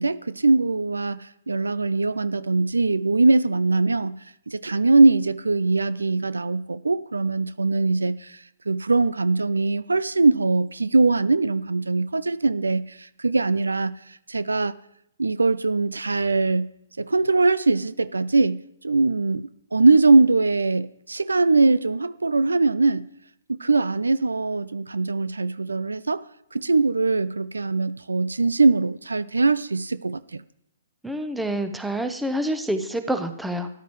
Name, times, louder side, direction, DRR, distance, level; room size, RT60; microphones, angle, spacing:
voice 1, 0.0-4.2 4.5-14.7 15.2-16.7 17.0-23.1 23.5-26.2 26.5-30.4, right 3 dB, 80° right, 0.3 m, -21 dB
voice 2, 31.0-33.7, right 1 dB, 5° right, 0.8 m, -27 dB
13.5 x 10.0 x 3.1 m
figure-of-eight pair, 125°, 0 cm